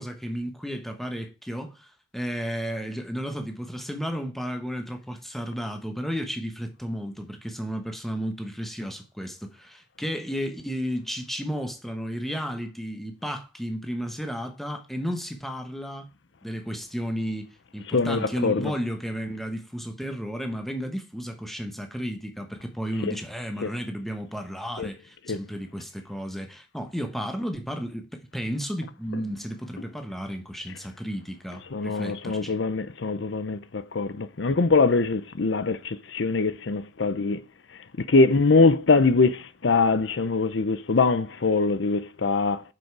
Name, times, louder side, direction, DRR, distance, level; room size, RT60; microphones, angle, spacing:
voice 1, 0.0-16.1 16.4-32.6, equal, ahead, 1.1 m, -33 dB
voice 2, 17.9-18.7 23.6-23.7 24.8-24.9 25.3-25.4 31.7-37.4 38.1-42.6, left 3 dB, 80° left, 0.7 m, -23 dB
7.7 x 7.0 x 4.7 m
head